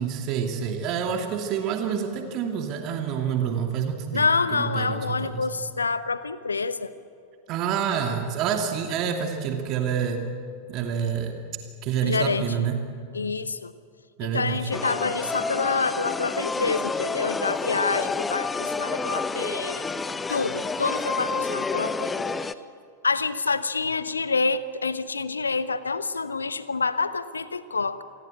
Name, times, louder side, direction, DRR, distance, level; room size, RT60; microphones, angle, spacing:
voice 1, 0.0-5.4 7.5-10.3 10.7-11.3 11.8-12.8 14.2-14.7, right 7 dB, 40° right, 4 dB, 2.6 m, -27 dB
voice 2, 4.1-6.9 12.0-12.7 13.1-13.7 14.2-19.9 20.3-22.3 23.0-28.0, left 4 dB, 75° left, 14 dB, 1.1 m, -27 dB
sound 1, 14.7-22.5, left 4 dB, 15° left, 0.9 m, -29 dB
27.0 x 21.0 x 8.0 m, 2.4 s
figure-of-eight pair, 90°, 0 cm